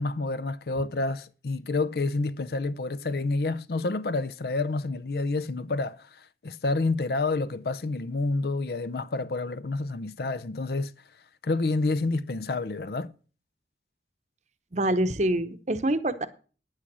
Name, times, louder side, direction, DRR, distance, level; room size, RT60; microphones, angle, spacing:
voice 1, 0.0-10.9 11.4-13.1, left 3 dB, 55° left, 0.5 m, -29 dB
voice 2, 14.7-16.3, right 1 dB, 40° right, 0.8 m, -25 dB
9.7 x 8.8 x 6.1 m
head